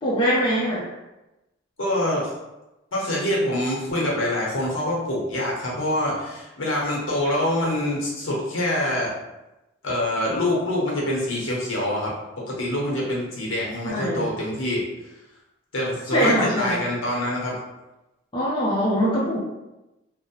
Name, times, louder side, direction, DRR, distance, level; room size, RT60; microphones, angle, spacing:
voice 1, 0.0-0.8 13.8-14.3 16.1-16.8 18.3-19.4, equal, 25° left, -7 dB, 0.5 m, -22 dB
voice 2, 1.8-2.3 2.9-9.1 9.8-12.1 12.4-14.8 15.7-17.6, left 1 dB, 70° left, -3 dB, 0.8 m, -25 dB
2.7 x 2.0 x 2.8 m, 0.98 s
head